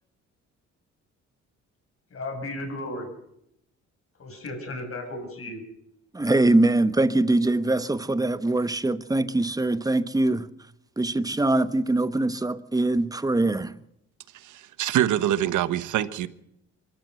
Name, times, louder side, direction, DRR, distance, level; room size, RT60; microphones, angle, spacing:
voice 1, 2.1-3.1 4.2-5.6, left 1 dB, 50° left, 7.8 m, -34 dB
voice 2, 6.1-10.5 11.0-13.7, right 2 dB, 10° right, 1.1 m, -23 dB
voice 3, 14.3-16.3, right 12 dB, 80° right, 1.2 m, -25 dB
24.5 x 14.0 x 7.8 m
cardioid pair, 90°, 30 cm